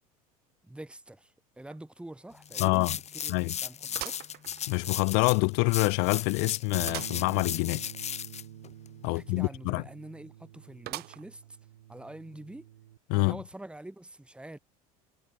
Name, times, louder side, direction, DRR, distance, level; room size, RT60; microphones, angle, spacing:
voice 1, 0.6-4.2 9.0-11.4 11.9-12.7 13.1-14.6, right 1 dB, 5° right, 2.5 m, -46 dB
sound 1, 1.7-1.8 2.2-2.3 3.9-5.0 5.5-5.6 6.9-7.3 7.7-7.8 8.0-8.1 10.9-11.5 12.1-12.2 13.1-13.2, right 18 dB, 55° right, 3.6 m, -41 dB
sound 2, 2.4-9.5, left 8 dB, 35° left, 2.4 m, -36 dB
voice 2, 2.6-3.0 3.3-3.6 4.7-7.8 9.0-9.8 13.1-13.4, left 40 dB or more, 65° left, 0.9 m, -26 dB
Bass guitar, 6.7-13.0, right 12 dB, 90° right, 1.9 m, -48 dB
hypercardioid pair, 85°, 19 cm